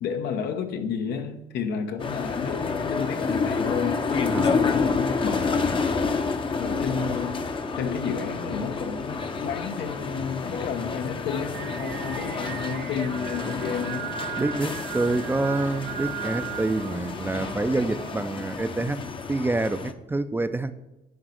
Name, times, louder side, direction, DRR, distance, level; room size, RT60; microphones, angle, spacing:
voice 1, 0.0-5.8 6.6-7.4 7.8-14.2, left 6 dB, 75° left, 1.1 m, -31 dB
sound 1, 2.0-19.9, left 4 dB, 30° left, 0.8 m, -29 dB
voice 2, 4.3-4.6 14.4-19.0 19.3-20.7, right 2 dB, 10° right, 0.5 m, -27 dB
Singing, 11.5-18.1, right 11 dB, 75° right, 0.8 m, -37 dB
10.0 x 4.0 x 6.4 m
cardioid pair, 110°, 17 cm